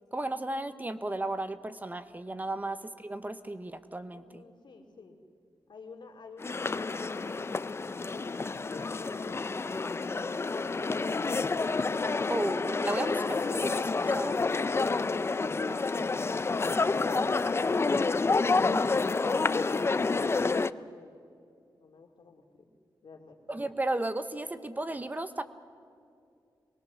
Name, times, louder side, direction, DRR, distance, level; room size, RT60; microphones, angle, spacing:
voice 1, 0.1-4.4 12.3-14.4 15.7-16.1 18.7-18.9 23.5-25.4, right 2 dB, 20° right, 11 dB, 0.9 m, -34 dB
voice 2, 4.1-5.2 5.7-9.4 9.7-11.2 19.9-21.1 21.8-22.6 23.0-23.4, left 4 dB, 70° left, 2 dB, 2.7 m, -50 dB
sound 1, 6.4-20.7, left 3 dB, 30° left, 0.5 m, -29 dB
24.0 x 21.0 x 7.0 m, 2.5 s
wide cardioid pair, 100°, 8 cm